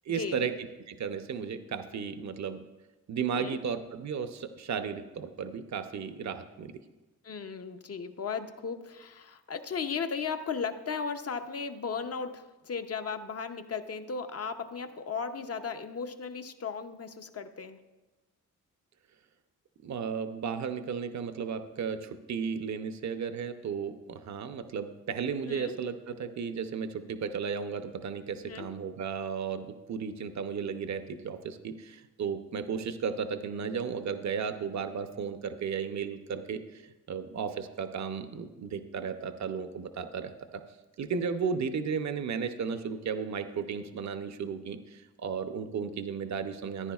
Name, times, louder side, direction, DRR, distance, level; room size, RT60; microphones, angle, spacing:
voice 1, 0.1-0.5 0.9-2.6 3.1-6.7 19.8-36.8 37.1-40.6 41.0-46.9, right 6 dB, 60° right, 9 dB, 0.7 m, -34 dB
voice 2, 7.2-17.8 25.4-25.8 28.4-28.7, left 5 dB, 50° left, 8 dB, 0.7 m, -36 dB
14.5 x 9.9 x 2.4 m, 1.1 s
cardioid pair, 80°, 32 cm